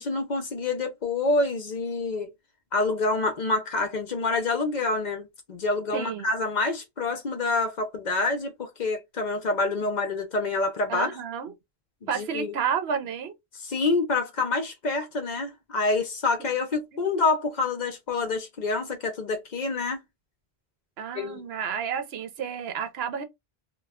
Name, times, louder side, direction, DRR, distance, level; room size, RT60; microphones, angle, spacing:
voice 1, 0.0-2.3 2.7-11.2 12.2-12.5 13.6-20.0 21.1-21.4, left 3 dB, 55° left, 0.6 m, -27 dB
voice 2, 5.9-6.3 10.9-11.5 12.1-13.4 16.4-16.5 21.0-23.2, right 7 dB, 80° right, 0.9 m, -31 dB
2.2 x 2.1 x 3.4 m
omnidirectional pair, 1.0 m